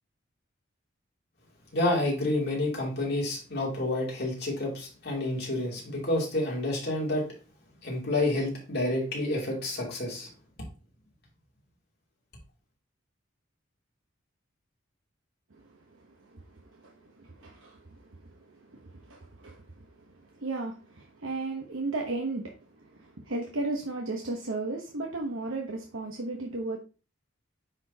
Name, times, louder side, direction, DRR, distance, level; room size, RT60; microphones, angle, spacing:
voice 1, 1.7-7.2 7.8-10.3, left 1 dB, 55° left, 2.9 m, -29 dB
voice 2, 15.5-26.8, right 2 dB, 80° right, 1.0 m, -36 dB
9.7 x 4.3 x 2.9 m
head